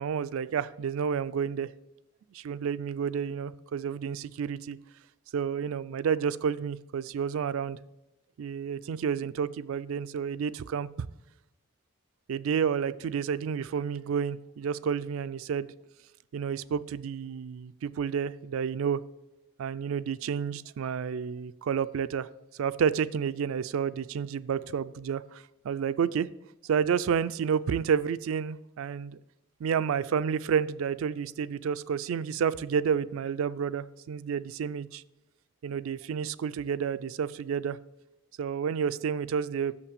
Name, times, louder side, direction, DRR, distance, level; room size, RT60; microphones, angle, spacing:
voice 1, 0.0-1.7 2.3-4.8 5.3-7.8 8.4-10.9 12.3-15.7 16.3-19.0 19.6-22.3 22.6-26.3 26.7-29.2 29.6-35.0 35.6-37.8 38.4-39.7, right 7 dB, 65° right, 16 dB, 0.3 m, -30 dB
6.6 x 5.7 x 6.7 m, 0.97 s
head